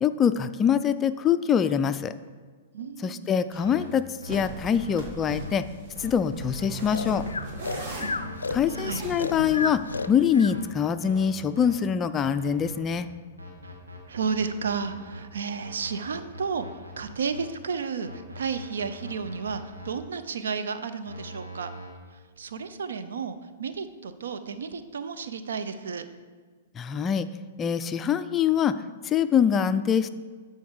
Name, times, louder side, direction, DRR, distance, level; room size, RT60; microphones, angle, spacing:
voice 1, 0.0-2.1 3.0-5.7 6.0-7.3 8.5-9.8 10.1-13.1 26.8-27.3 27.6-28.7 29.0-30.1, left 8 dB, 25° left, 12 dB, 0.4 m, -24 dB
voice 2, 2.7-3.4 7.7-8.0 8.7-9.0 14.1-18.1 18.4-21.7 22.4-26.1, right 5 dB, 75° right, 10 dB, 0.6 m, -32 dB
sound 1, 3.5-3.7 4.3-9.9, right 1 dB, 45° right, 2.1 m, -38 dB
sound 2, 3.6-3.9 4.2-4.4 4.8-5.0 5.4-5.5 6.0-6.1 6.5-6.7 7.1-7.2 7.6-7.8 8.2-8.4 8.7-8.9 9.3-9.5 9.9-10.1 10.4-10.7 11.0-11.3 11.6-11.7 12.2-13.0 13.4-15.2 15.6-17.4 18.0-19.9 21.1-21.9, left 1 dB, 90° right, 2.0 m, -42 dB
Breathing, 6.9-10.6, left 4 dB, 90° left, 0.4 m, -32 dB
12.0 x 4.6 x 4.7 m, 1.5 s
hypercardioid pair, 115°, 0 cm